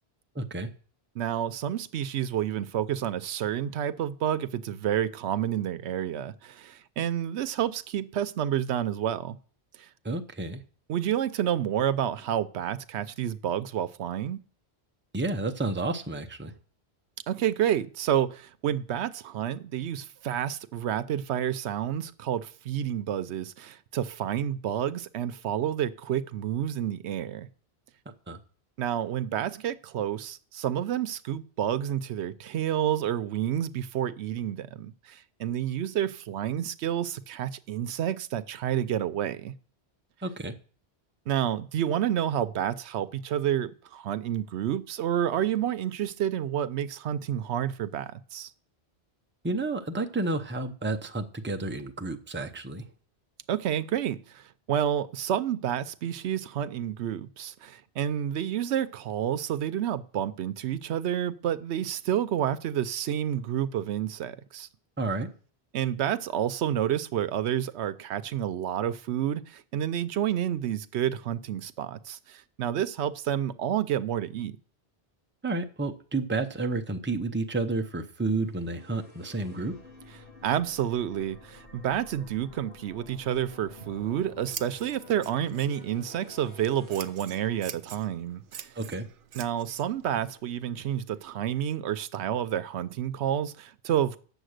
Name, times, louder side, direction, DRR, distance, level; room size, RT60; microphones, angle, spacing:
voice 1, 0.3-0.7 10.0-10.6 15.1-16.5 28.3-28.4 40.2-40.5 49.4-52.8 65.0-65.3 75.4-79.7 88.8-89.1, right 2 dB, 10° right, 0.7 m, -31 dB
voice 2, 1.2-9.4 9.8-9.9 10.9-14.4 17.3-27.5 28.8-39.5 41.3-48.5 53.5-64.7 65.7-74.6 80.4-88.7 89.3-94.2, right 10 dB, 85° right, 0.9 m, -29 dB
sound 1, 78.2-88.4, left 3 dB, 90° left, 2.3 m, -51 dB
Scissors, 83.6-91.7, right 8 dB, 60° right, 0.8 m, -47 dB
9.0 x 7.0 x 6.5 m
omnidirectional pair, 1.1 m